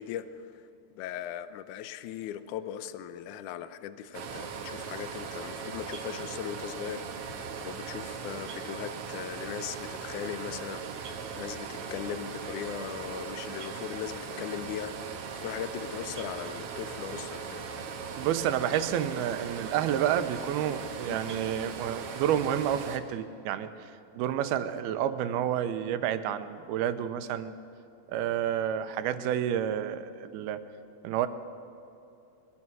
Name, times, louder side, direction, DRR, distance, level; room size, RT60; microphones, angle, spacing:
voice 1, 0.0-17.7 21.1-21.2, left 10 dB, 85° left, 12 dB, 1.7 m, -39 dB
sound 1, 4.1-23.0, right 6 dB, 65° right, 1.4 m, -39 dB
voice 2, 18.2-27.5 28.1-30.6 31.0-31.3, right 10 dB, 80° right, 11 dB, 2.7 m, -30 dB
23.5 x 21.5 x 6.2 m, 2.8 s
omnidirectional pair, 4.5 m